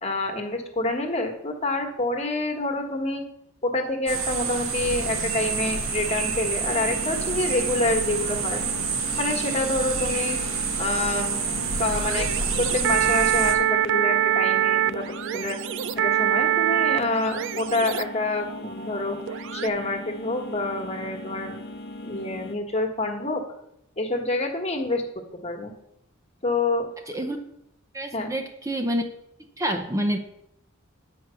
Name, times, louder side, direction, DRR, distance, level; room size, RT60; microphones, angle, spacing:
voice 1, 0.0-3.2 3.6-8.6 9.2-10.4 10.8-11.3 11.8-12.3 12.6-15.6 16.0-19.2 19.5-21.6 22.0-23.4 24.0-25.0 25.3-25.7 26.4-26.9 28.1-28.3, left 2 dB, 30° left, 4 dB, 1.4 m, -27 dB
sound 1, 4.1-13.6, right 5 dB, 85° right, 1.4 m, -28 dB
sound 2, 6.6-22.5, left 2 dB, 50° left, 0.8 m, -39 dB
sound 3, 11.0-19.7, right 12 dB, 60° right, 0.3 m, -25 dB
voice 2, 27.9-29.0 29.6-30.2, equal, 15° right, 4 dB, 0.7 m, -27 dB
9.5 x 4.8 x 6.9 m, 0.79 s
head